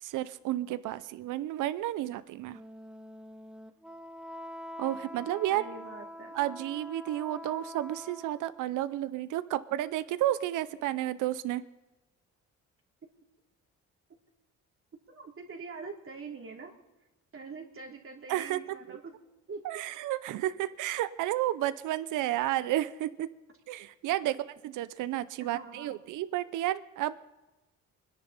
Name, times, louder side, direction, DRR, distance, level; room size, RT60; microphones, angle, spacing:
voice 1, 0.0-2.6 4.8-5.6 6.3-11.6 18.3-19.0 19.6-23.3 23.7-24.4 24.6-27.2, right 14 dB, 85° right, 15 dB, 0.7 m, -32 dB
Wind instrument woodwind instrument, 2.4-8.7, left 1 dB, 5° right, 0.9 m, -45 dB
voice 2, 5.5-6.4 15.1-16.7 17.3-19.0 19.5-19.6 25.5-25.9, right 4 dB, 45° right, 1 dB, 3.1 m, -44 dB
24.5 x 10.5 x 4.1 m, 1.1 s
cardioid pair, 90°, 30 cm